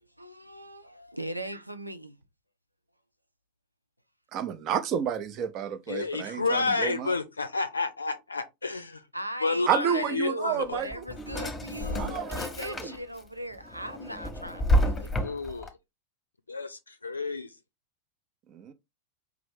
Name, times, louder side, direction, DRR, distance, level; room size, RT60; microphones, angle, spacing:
voice 1, 0.2-2.2 9.1-15.1, right 1 dB, 90° right, 0.5 m, -38 dB
voice 2, 4.3-7.1 9.7-11.0 12.0-12.9 18.5-18.7, right 8 dB, 35° right, 0.7 m, -30 dB
voice 3, 5.9-9.0 9.4-10.8 11.9-12.6 15.2-15.7 16.5-17.5, left 3 dB, 75° left, 0.5 m, -31 dB
Drawer open or close, 10.6-13.2 13.6-15.7, equal, 15° left, 1.0 m, -29 dB
4.8 x 3.0 x 3.4 m
figure-of-eight pair, 90°, 0 cm